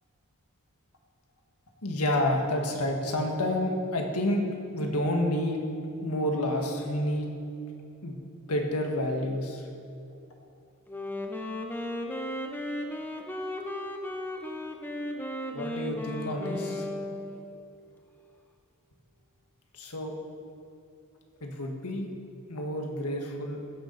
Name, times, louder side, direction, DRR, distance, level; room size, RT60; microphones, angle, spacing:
voice 1, 1.8-4.4 4.7-5.6 6.0-7.3 8.0-8.2 8.5-9.6 15.5-16.9 19.7-20.1 21.4-22.1 22.5-23.6, left 1 dB, 90° left, 2 dB, 1.7 m, -29 dB
Wind instrument woodwind instrument, 10.9-17.6, left 1 dB, 10° left, 0.8 m, -35 dB
15.5 x 6.8 x 5.6 m, 2.7 s
head